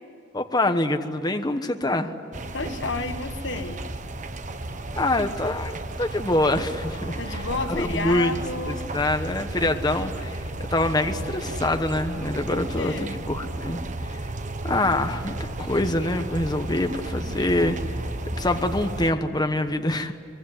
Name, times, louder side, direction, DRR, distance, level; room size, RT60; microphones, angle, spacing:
voice 1, 0.3-2.1 5.0-8.3 8.7-14.2 14.6-17.8 18.4-20.1, left 1 dB, 20° left, 6 dB, 1.1 m, -25 dB
sound 1, 2.3-19.1, right 1 dB, 40° right, 1.2 m, -33 dB
voice 2, 2.5-3.8 7.2-8.8 12.5-13.1, left 3 dB, 65° left, 8 dB, 1.4 m, -31 dB
24.0 x 22.0 x 9.8 m, 2.3 s
head